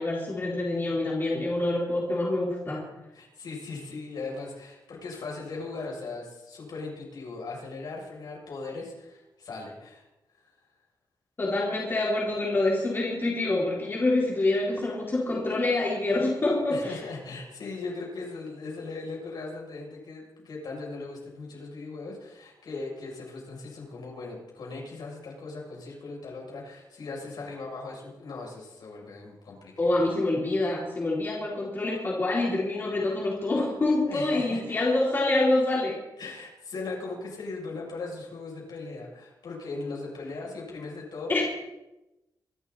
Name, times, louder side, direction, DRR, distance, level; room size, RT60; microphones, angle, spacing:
voice 1, 0.0-2.8 11.4-17.0 29.8-36.0 41.3-41.4, left 2 dB, 30° left, -5 dB, 4.1 m, -26 dB
voice 2, 3.1-10.0 16.7-29.7 34.1-34.8 36.2-41.4, left 3 dB, 75° left, -2 dB, 7.4 m, -38 dB
25.0 x 13.0 x 4.3 m, 0.97 s
wide cardioid pair, 160°, 7 cm